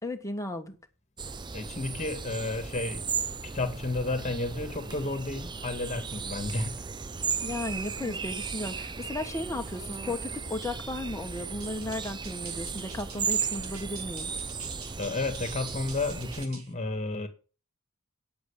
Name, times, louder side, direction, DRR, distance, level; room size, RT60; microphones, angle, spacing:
voice 1, 0.0-0.8 7.4-14.3, left 1 dB, 15° left, 1.4 m, -35 dB
sound 1, 1.2-16.5, right 5 dB, 20° right, 0.5 m, -36 dB
voice 2, 1.5-3.1 3.5-6.8 15.0-17.3, left 2 dB, 30° left, 2.0 m, -32 dB
sound 2, 11.6-16.7, right 5 dB, 80° right, 2.8 m, -48 dB
9.2 x 8.1 x 8.5 m
head